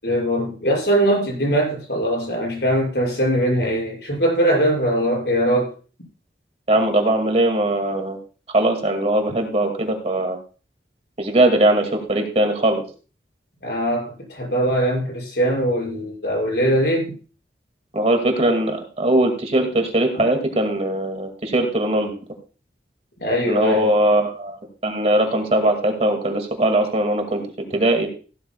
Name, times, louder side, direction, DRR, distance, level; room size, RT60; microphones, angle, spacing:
voice 1, 0.0-5.7 13.6-17.1 23.2-23.9, right 1 dB, 65° left, -2 dB, 6.4 m, -21 dB
voice 2, 6.7-8.2 8.5-10.4 11.2-12.8 17.9-22.1 23.5-24.6 24.8-27.4 27.7-28.1, right 1 dB, 35° right, 4 dB, 2.1 m, -20 dB
15.5 x 12.5 x 2.3 m, 0.36 s
head